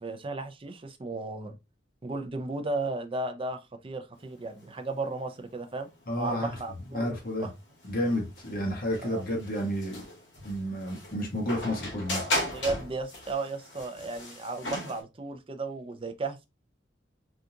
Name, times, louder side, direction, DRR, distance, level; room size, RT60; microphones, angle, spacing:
voice 1, 0.0-1.5 2.0-5.9 6.2-7.1 7.4-7.5 9.0-9.2 12.4-16.5, right 3 dB, 30° right, 0.5 m, -34 dB
sound 1, 4.1-15.0, left 1 dB, 70° left, 1.6 m, -37 dB
voice 2, 6.1-6.5 6.9-7.5 7.9-10.0 10.4-12.2, equal, 50° left, 1.1 m, -31 dB
3.7 x 2.4 x 2.7 m
head